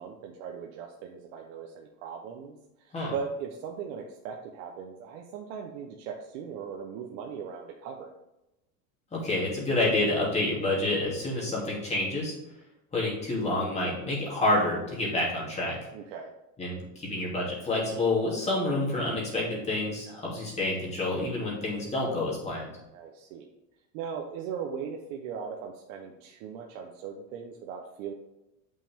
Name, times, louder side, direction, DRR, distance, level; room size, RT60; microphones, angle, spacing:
voice 1, 0.0-8.1 15.9-16.3 22.9-23.5 23.9-28.1, right 7 dB, 60° right, 1 dB, 1.0 m, -39 dB
voice 2, 9.1-12.3 12.9-15.8 16.6-22.7, left 2 dB, 15° left, -4 dB, 2.7 m, -28 dB
8.3 x 5.6 x 3.6 m, 0.94 s
supercardioid pair, 145°, 41 cm